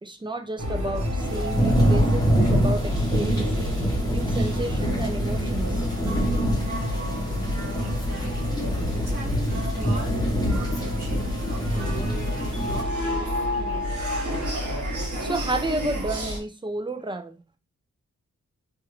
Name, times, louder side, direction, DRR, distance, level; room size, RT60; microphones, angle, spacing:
voice 1, 0.0-3.8 4.1-5.9 15.2-17.4, right 2 dB, 15° right, 0.4 m, -31 dB
sound 1, 0.6-16.4, left 1 dB, 75° right, 1.1 m, -30 dB
sound 2, 1.2-12.8, equal, 15° left, 0.8 m, -25 dB
voice 2, 7.8-14.0 16.9-17.0, right 2 dB, 40° right, 1.0 m, -40 dB
3.2 x 2.4 x 3.0 m
wide cardioid pair, 165°, 29 cm